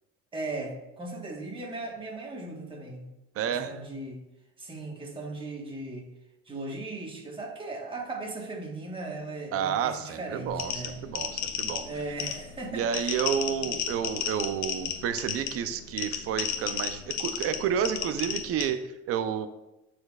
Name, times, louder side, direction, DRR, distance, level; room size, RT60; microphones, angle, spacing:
voice 1, 0.3-3.1 3.5-4.2 4.6-6.1 6.5-11.0 11.8-13.7, right 2 dB, 15° right, 0 dB, 1.3 m, -38 dB
voice 2, 3.4-3.8 9.5-11.8 12.7-19.5, right 8 dB, 50° right, 10 dB, 0.6 m, -30 dB
sound 1, 10.5-18.7, left 8 dB, 70° left, 1.0 m, -33 dB
12.5 x 4.4 x 2.4 m, 0.95 s
cardioid pair, 140°, 29 cm